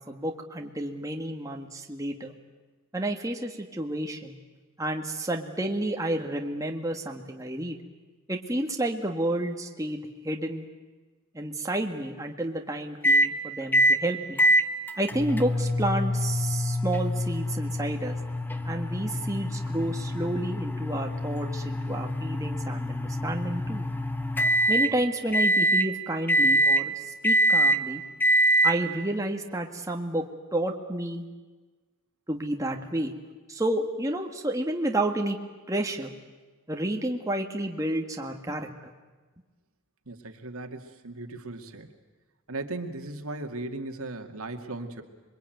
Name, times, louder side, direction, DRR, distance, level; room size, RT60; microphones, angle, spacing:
voice 1, 0.1-2.3 2.9-4.4 4.8-7.8 8.3-10.7 11.3-14.4 15.0-18.1 18.6-23.8 24.7-28.0 28.6-31.2 32.3-33.1 33.5-35.4 35.7-36.1 36.7-38.9, right 1 dB, 15° right, 2 dB, 1.7 m, -30 dB
sound 1, 13.0-13.3 13.7-14.0 14.4-24.9 25.3-25.9 26.3-26.8 27.2-27.8 28.2-28.8, equal, 10° left, 1.1 m, -24 dB
voice 2, 40.1-41.9 42.5-45.0, right 2 dB, 85° right, 5 dB, 2.2 m, -37 dB
27.0 x 22.5 x 9.3 m, 1.3 s
head